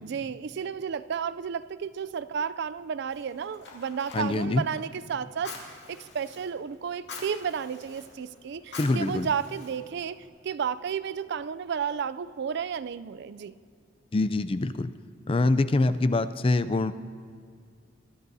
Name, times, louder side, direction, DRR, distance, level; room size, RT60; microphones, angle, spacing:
voice 1, 0.0-5.5 5.9-13.5, right 7 dB, 60° right, 16 dB, 0.4 m, -32 dB
Fire, 3.1-10.3, left 4 dB, 60° left, 2.3 m, -46 dB
voice 2, 4.1-4.6 8.8-9.3 14.1-14.9 15.3-16.9, left 2 dB, 30° left, 13 dB, 0.4 m, -24 dB
22.5 x 13.0 x 2.7 m, 2.2 s
head